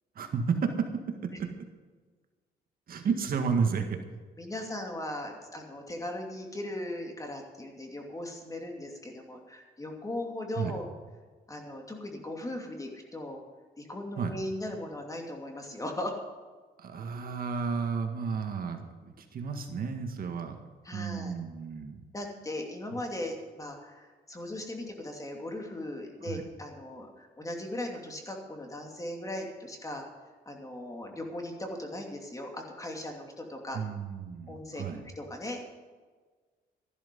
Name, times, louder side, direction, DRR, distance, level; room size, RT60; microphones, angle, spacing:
voice 1, 0.2-0.9 1.2-1.5 2.9-4.0 10.6-10.8 14.2-14.3 16.8-20.6 20.9-22.0 26.2-26.4 33.7-35.1, right 5 dB, 55° right, 5 dB, 1.8 m, -32 dB
voice 2, 4.4-10.9 11.5-13.4 13.8-16.1 20.8-21.3 22.1-30.0 30.5-33.8 34.5-35.8, left 1 dB, 20° left, 2 dB, 2.7 m, -38 dB
13.5 x 12.0 x 5.4 m, 1.4 s
cardioid pair, 115°, 18 cm